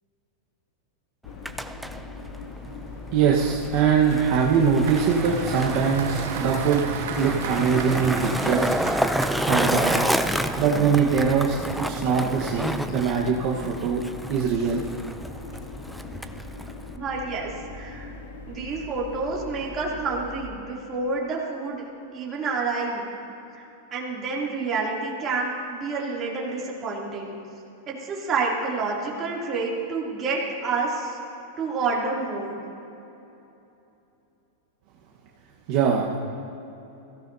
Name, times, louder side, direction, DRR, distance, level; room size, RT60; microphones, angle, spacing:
sound 1, 1.2-20.5, left 3 dB, 75° left, 1.3 m, -40 dB
Skateboard, 1.2-17.0, equal, ahead, 0.4 m, -30 dB
voice 1, 3.1-6.8 7.2-8.7 9.5-10.0 10.6-14.0 14.3-14.8 35.7-36.2, right 6 dB, 45° right, -3 dB, 1.2 m, -22 dB
Applause, 3.8-10.9, right 7 dB, 80° right, 1.3 m, -37 dB
voice 2, 16.9-18.1 18.5-23.1 23.5-23.6 23.9-27.3 27.9-31.2 31.6-32.6, right 4 dB, 20° right, -5 dB, 2.8 m, -29 dB
22.5 x 16.0 x 2.7 m, 2.9 s
supercardioid pair, 160°, 0 cm